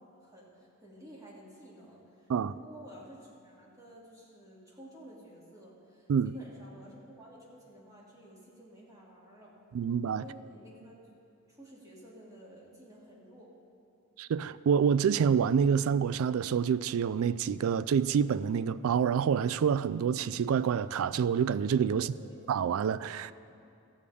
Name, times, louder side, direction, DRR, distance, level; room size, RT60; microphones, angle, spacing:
voice 1, 0.0-9.5 10.1-10.9 11.5-13.5 21.9-22.5, right 1 dB, 15° right, 2.4 m, -52 dB
voice 2, 9.7-10.2 14.2-22.1 22.5-23.3, right 7 dB, 70° right, 0.3 m, -27 dB
14.0 x 5.1 x 8.4 m
head